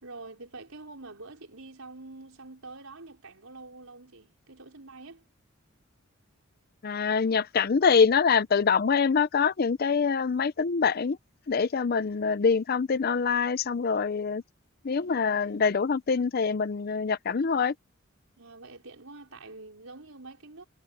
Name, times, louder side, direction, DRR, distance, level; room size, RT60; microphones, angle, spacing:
voice 1, 0.0-5.2 18.4-20.6, right 3 dB, 85° right, 4.6 m, -46 dB
voice 2, 6.8-11.2 11.5-14.4 14.8-17.7, left 5 dB, 45° left, 0.5 m, -25 dB
head